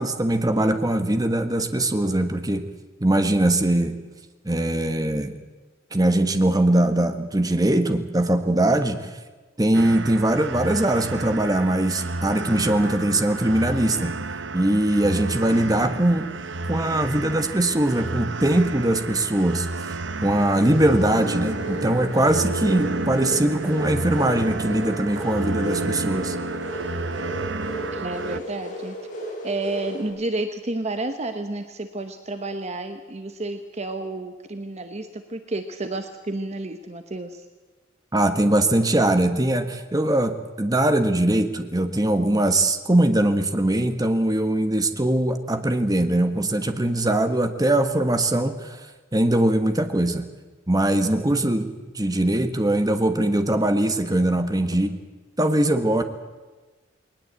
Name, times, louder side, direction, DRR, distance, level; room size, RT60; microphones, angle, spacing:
voice 1, 0.0-2.7 3.0-4.0 4.4-5.3 5.9-9.1 9.6-14.1 14.5-16.3 16.7-19.7 20.2-26.3 38.1-48.8 49.1-50.2 50.7-51.7 51.9-55.0 55.4-56.0, right 1 dB, 20° right, 8 dB, 1.4 m, -21 dB
sound 1, 9.7-28.4, right 3 dB, 65° right, 0.9 m, -31 dB
sound 2, 20.4-30.1, equal, 40° left, 7.8 m, -35 dB
voice 2, 27.9-29.0 29.4-37.4, right 2 dB, 35° right, 7 dB, 1.1 m, -31 dB
20.5 x 19.5 x 8.3 m, 1.3 s
head